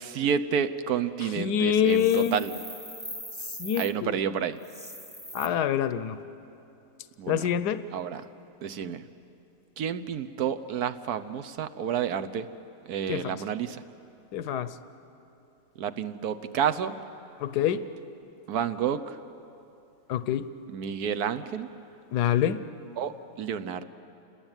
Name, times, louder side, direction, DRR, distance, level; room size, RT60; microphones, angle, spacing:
voice 1, 0.0-2.6 3.8-4.6 7.2-7.5 7.9-8.2 8.6-9.0 9.8-12.5 12.9-13.8 15.8-17.0 18.5-19.2 20.7-21.7 23.0-23.8, right 8 dB, 75° right, 12 dB, 1.4 m, -30 dB
voice 2, 1.4-2.4 3.6-4.1 5.3-6.2 7.3-7.8 13.1-13.4 14.3-14.7 17.4-17.8 20.1-20.4 22.1-22.6, left 9 dB, 85° left, 13 dB, 1.4 m, -25 dB
sound 1, 1.8-3.9 4.6-5.5, equal, 5° right, 1.0 m, -41 dB
29.5 x 20.5 x 9.0 m, 2.8 s
omnidirectional pair, 1.7 m